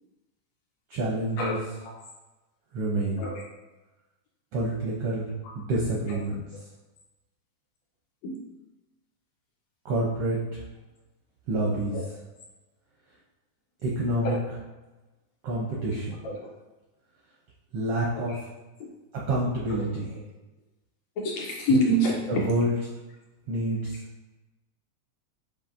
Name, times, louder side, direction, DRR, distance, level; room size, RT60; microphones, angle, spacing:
voice 1, 0.9-1.6 2.7-3.2 4.5-5.3 5.5-6.4 9.8-10.6 11.5-12.0 13.8-14.3 15.4-16.2 17.7-18.4 19.1-20.2 22.3-22.7 23.5-24.0, right 1 dB, 80° right, -4 dB, 1.3 m, -28 dB
voice 2, 21.2-22.5, equal, 75° left, -2 dB, 1.7 m, -26 dB
7.0 x 2.6 x 2.5 m, 1.1 s
omnidirectional pair, 3.4 m